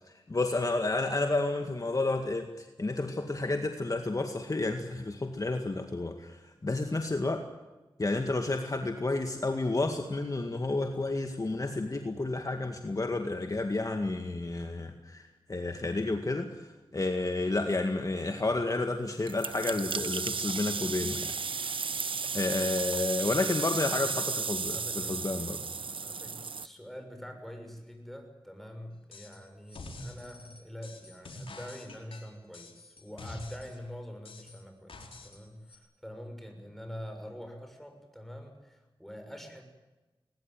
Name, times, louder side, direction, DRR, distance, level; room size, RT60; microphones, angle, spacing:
voice 1, 0.3-7.4 8.0-15.2 15.5-21.3 21.6-21.8 22.3-25.6, left 2 dB, 40° left, 5 dB, 2.0 m, -31 dB
sound 1, 19.3-26.7, right 5 dB, 70° right, 0.9 m, -34 dB
voice 2, 24.0-25.2 25.8-39.6, equal, 5° left, 5 dB, 6.5 m, -45 dB
sound 2, 29.1-29.4 29.7-33.8 34.2-35.4 35.7-35.8, left 2 dB, 90° left, 4.3 m, -46 dB
21.0 x 20.5 x 9.3 m, 1.1 s
wide cardioid pair, 65°, 9 cm